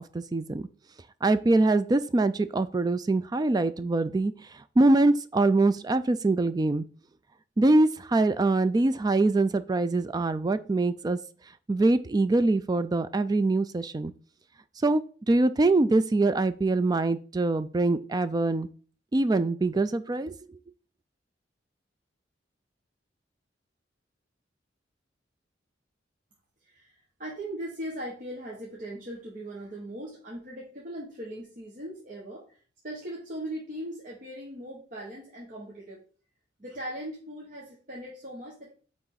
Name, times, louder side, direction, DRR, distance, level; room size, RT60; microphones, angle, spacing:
voice 1, 0.1-0.6 1.2-6.8 7.6-11.2 11.7-14.1 14.8-15.0 15.3-18.7 19.1-20.6, right 2 dB, 20° right, 13 dB, 0.3 m, -24 dB
voice 2, 27.2-32.4 32.8-36.0 36.6-38.7, right 1 dB, 45° right, -4 dB, 1.5 m, -39 dB
8.9 x 3.7 x 4.0 m, 0.41 s
head